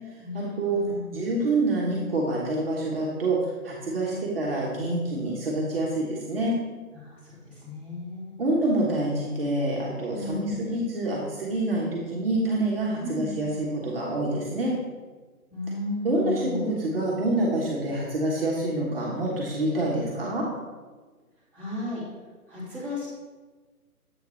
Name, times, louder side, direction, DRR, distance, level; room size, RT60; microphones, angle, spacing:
voice 1, 0.2-1.2 4.0-4.3 6.9-8.6 10.1-10.8 13.0-13.6 15.5-17.3 21.5-22.0 22.5-23.1, left 2 dB, 5° left, -13 dB, 2.2 m, -35 dB
voice 2, 1.1-3.4 3.6-6.6 8.4-14.7 16.0-20.5, right 2 dB, 40° right, -4 dB, 1.2 m, -27 dB
8.0 x 3.7 x 4.3 m, 1.4 s
figure-of-eight pair, 150°, 45 cm